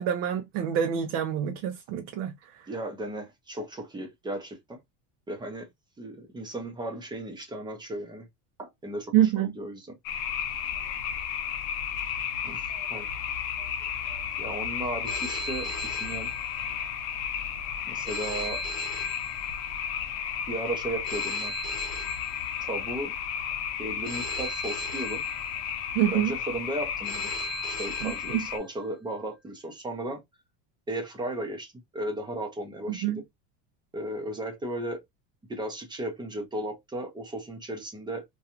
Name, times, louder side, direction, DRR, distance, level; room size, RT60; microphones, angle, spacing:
voice 1, 0.0-2.6 9.1-9.5 25.9-26.3 28.0-28.4 33.0-33.2, right 10 dB, 60° right, 0.6 m, -26 dB
voice 2, 2.7-4.8 5.3-5.7 6.0-8.3 8.6-9.9 10.8-10.9 12.4-13.1 13.6-13.7 14.1-16.3 17.9-18.6 20.5-21.5 22.6-23.1 23.8-25.2 26.1-27.3 27.7-30.2 30.9-33.2 33.9-35.0 35.5-38.2, right 1 dB, 10° right, 0.5 m, -35 dB
sound 1, 10.0-28.6, left 8 dB, 55° left, 0.6 m, -33 dB
Telephone, 15.0-16.9 18.0-19.9 21.0-22.9 24.0-25.9 27.0-28.9, right 2 dB, 20° left, 0.9 m, -39 dB
2.5 x 2.3 x 2.8 m
cardioid pair, 150°, 43 cm